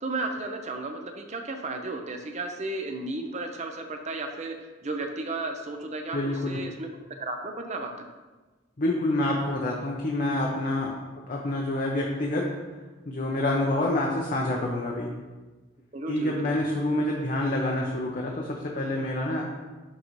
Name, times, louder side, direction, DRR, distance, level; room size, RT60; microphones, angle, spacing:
voice 1, 0.0-4.6 4.8-6.9 7.2-8.1 15.9-16.7, right 2 dB, 35° right, 4 dB, 0.6 m, -34 dB
voice 2, 6.1-6.6 8.8-11.0 11.3-12.5 13.1-15.1 16.1-19.4, left 1 dB, 40° left, -1 dB, 0.6 m, -27 dB
10.5 x 3.9 x 3.1 m, 1.3 s
head